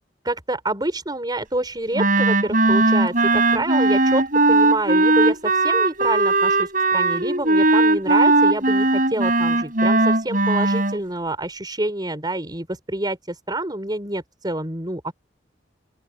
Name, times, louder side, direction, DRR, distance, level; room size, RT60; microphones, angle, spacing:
voice 1, 0.2-15.1, right 1 dB, 25° right, 4.8 m, -27 dB
Wind instrument woodwind instrument, 1.9-11.0, right 2 dB, 50° right, 7.2 m, -18 dB
open air
head